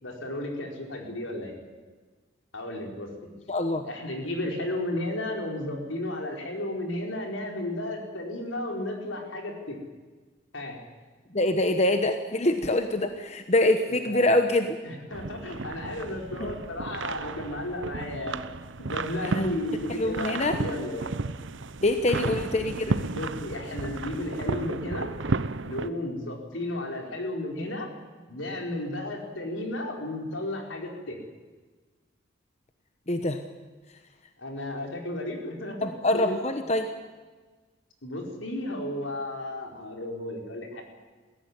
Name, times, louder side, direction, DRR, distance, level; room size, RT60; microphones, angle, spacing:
voice 1, 0.0-1.6 2.5-3.1 3.8-9.8 10.5-10.8 13.1-13.2 13.9-14.3 14.8-18.5 18.8-21.1 22.2-22.3 23.1-25.1 25.6-27.9 28.3-31.2 34.4-35.8 36.1-36.4 38.0-40.8, left 1 dB, 80° left, 2 dB, 4.6 m, -33 dB
voice 2, 3.5-3.8 11.3-14.8 19.3-19.5 20.0-20.6 21.8-23.0 33.1-33.4 35.8-36.9, left 1 dB, 35° left, 7 dB, 1.1 m, -25 dB
sound 1, 15.1-25.9, right 3 dB, 75° right, 0.8 m, -33 dB
21.5 x 16.0 x 9.8 m, 1.3 s
head